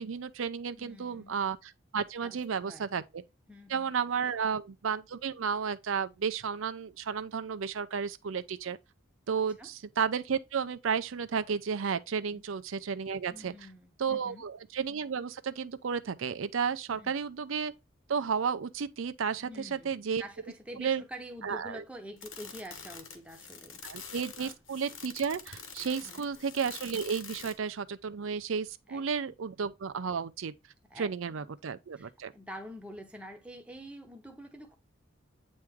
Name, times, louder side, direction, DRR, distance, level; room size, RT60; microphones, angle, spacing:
voice 1, 0.0-3.2 3.7-8.8 9.3-13.5 14.0-17.7 18.1-20.2 20.8-21.0 21.4-21.8 23.8-30.5 31.0-32.3, right 6 dB, 80° right, 0.5 m, -33 dB
voice 2, 0.8-1.4 2.2-2.9 3.5-3.9 4.2-4.3 4.5-4.6 9.6-9.7 12.3-12.4 13.3-14.4 16.9-17.2 19.4-24.1 24.4-24.5 26.0-26.3 28.9-29.0 30.9-34.8, equal, 5° right, 0.9 m, -47 dB
sound 1, 22.2-27.7, left 6 dB, 80° left, 1.2 m, -46 dB
8.6 x 3.1 x 3.5 m
head